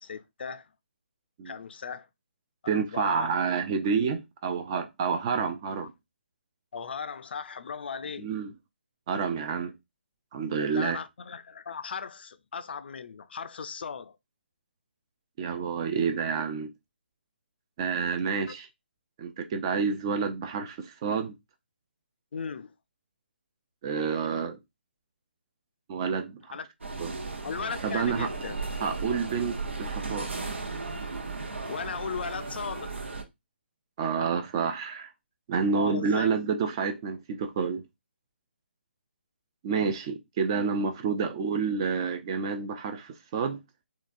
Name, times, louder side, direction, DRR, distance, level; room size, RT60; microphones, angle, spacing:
voice 1, 0.0-0.7 1.4-2.1 2.7-3.4 5.8-5.9 6.7-8.3 10.7-14.2 22.3-22.7 26.5-26.7 27.4-28.6 31.7-32.9 35.7-36.3, left 6 dB, 60° left, 0.4 m, -37 dB
voice 2, 2.7-5.9 8.2-8.5 9.1-9.7 10.3-11.0 15.4-16.7 17.8-18.7 19.2-21.3 23.8-24.6 25.9-26.4 27.0-27.1 27.8-28.3 28.8-30.3 34.0-35.1 35.5-37.8 39.6-43.6, right 5 dB, 25° right, 0.3 m, -29 dB
sound 1, 26.8-33.2, right 3 dB, 85° right, 0.8 m, -35 dB
3.7 x 2.3 x 2.5 m
hypercardioid pair, 155°, 6 cm